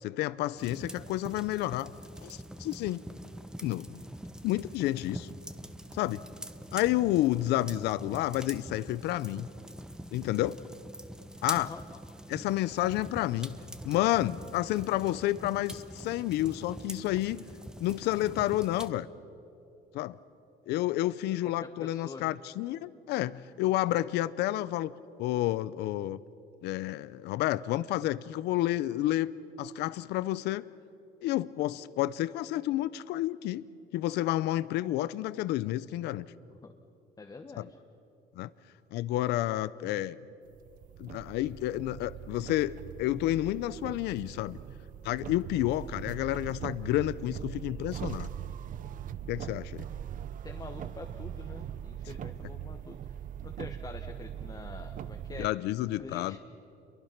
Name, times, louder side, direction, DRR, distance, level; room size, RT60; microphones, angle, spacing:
voice 1, 0.0-1.9 2.2-3.0 3.6-4.0 4.4-5.3 5.9-6.2 6.7-9.5 10.1-10.6 11.4-11.7 12.3-13.6 13.8-17.4 17.8-19.1 19.9-20.2 20.7-24.9 25.2-26.2 26.6-29.3 29.6-30.7 31.2-33.7 33.9-36.2 37.6-37.7 38.4-38.5 38.9-40.2 41.0-44.6 45.0-48.3 49.3-49.8 55.4-56.4, left 15 dB, 80° left, 17 dB, 0.6 m, -30 dB
sound 1, 0.6-18.9, right 1 dB, 5° right, 1.0 m, -44 dB
voice 2, 21.4-22.3 36.6-36.7 37.2-37.7 50.4-53.1 53.4-55.5 56.0-56.4, left 4 dB, 20° left, 4 dB, 1.2 m, -45 dB
sound 2, 40.5-55.5, right 10 dB, 50° right, 0.7 m, -41 dB
28.5 x 23.0 x 5.9 m, 2.8 s
cardioid pair, 110°, 17 cm